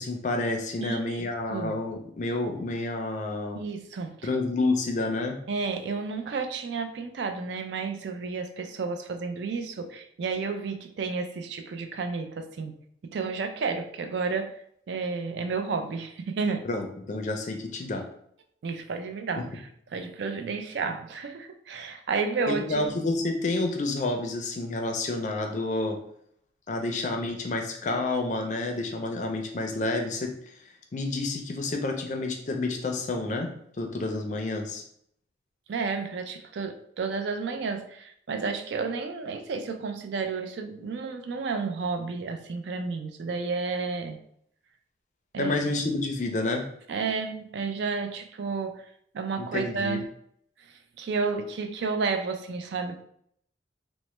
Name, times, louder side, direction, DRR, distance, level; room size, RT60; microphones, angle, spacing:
voice 1, 0.0-3.6 4.2-5.4 16.6-18.0 19.4-19.5 22.5-26.0 26.7-30.3 30.9-33.5 33.8-34.8 45.4-46.7 49.4-50.0, left 2 dB, 40° left, 3 dB, 0.4 m, -29 dB
voice 2, 0.8-1.8 3.5-4.3 5.5-12.7 13.0-14.6 14.9-16.7 18.6-22.9 35.7-44.2 45.3-45.7 46.9-48.8 49.1-50.1 51.0-53.0, right 4 dB, 70° right, 7 dB, 0.3 m, -31 dB
3.1 x 2.0 x 3.0 m, 0.69 s
head